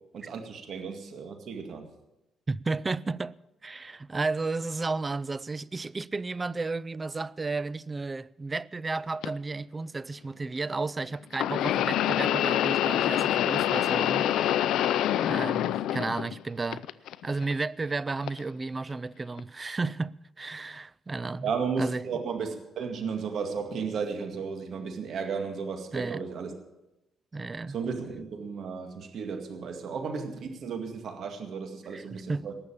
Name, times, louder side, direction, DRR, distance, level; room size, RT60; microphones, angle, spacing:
voice 1, 0.1-1.9 21.4-26.5 27.7-32.5, right 5 dB, 65° right, 2.0 m, -34 dB
voice 2, 2.5-3.4 3.6-14.5 15.2-16.8 17.2-21.5 21.8-22.0 25.9-26.2 27.3-27.8 31.9-32.5, right 3 dB, 25° right, 0.4 m, -33 dB
sound 1, 9.2-9.3 11.3-16.4 16.7-17.5 18.3-18.4 19.4-19.5, left 12 dB, 85° left, 0.5 m, -26 dB
18.5 x 7.0 x 8.6 m
cardioid pair, 90°, 0 cm